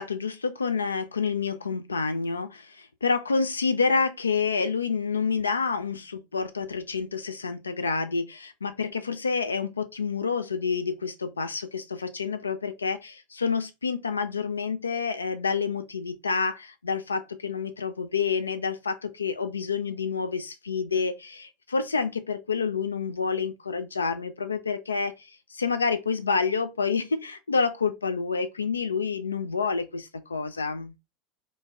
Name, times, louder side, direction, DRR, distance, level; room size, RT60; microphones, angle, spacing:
voice 1, 0.0-30.9, left 5 dB, 80° left, 0.3 m, -28 dB
2.3 x 2.1 x 3.4 m
figure-of-eight pair, 75°, 0 cm